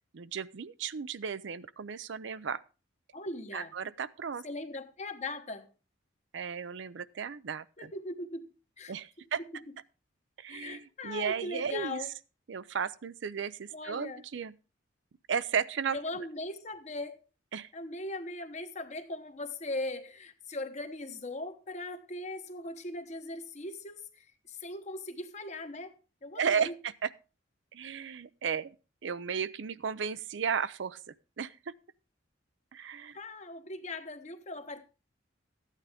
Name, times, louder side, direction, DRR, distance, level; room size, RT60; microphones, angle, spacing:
voice 1, 0.1-2.6 3.5-4.4 6.3-7.9 8.9-9.4 10.4-12.0 12.5-14.5 15.3-16.2 17.5-17.7 26.4-27.1 27.7-28.8 29.0-31.7 32.7-33.2, right 6 dB, 65° right, 0.5 m, -34 dB
voice 2, 3.1-3.7 4.4-5.7 7.8-8.9 10.5-12.1 13.7-14.2 15.9-17.3 17.7-25.9 26.2-26.7 33.1-34.8, left 2 dB, 35° left, 1.0 m, -39 dB
13.0 x 9.1 x 3.5 m
head